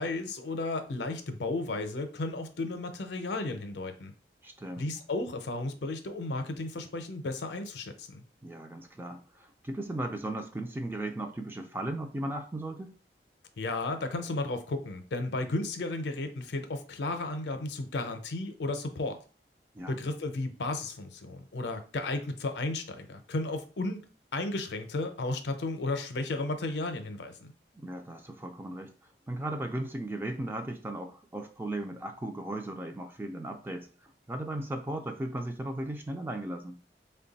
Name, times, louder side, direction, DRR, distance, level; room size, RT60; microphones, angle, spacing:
voice 1, 0.0-4.1 4.8-8.2 13.6-19.2 19.9-24.0 24.3-27.5, left 2 dB, 80° left, 0.6 m, -34 dB
voice 2, 4.4-4.9 8.4-12.9 19.7-20.0 27.8-28.9 29.3-33.9 34.3-36.8, right 1 dB, 10° right, 0.3 m, -36 dB
3.2 x 2.2 x 4.0 m
head